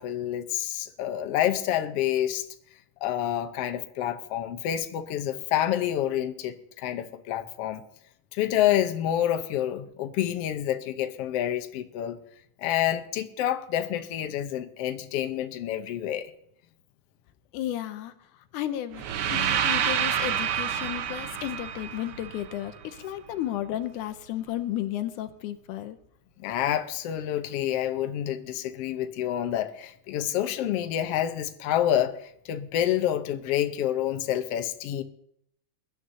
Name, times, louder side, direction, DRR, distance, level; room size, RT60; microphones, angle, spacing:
voice 1, 0.0-2.5 3.0-7.8 8.3-12.2 12.6-16.3 26.4-35.0, left 11 dB, 65° left, 7 dB, 1.6 m, -28 dB
voice 2, 17.5-26.0, left 12 dB, 80° left, 10 dB, 2.2 m, -33 dB
sound 1, 18.9-23.0, right 9 dB, 85° right, 1.2 m, -28 dB
22.0 x 11.5 x 2.8 m, 0.71 s
omnidirectional pair, 3.6 m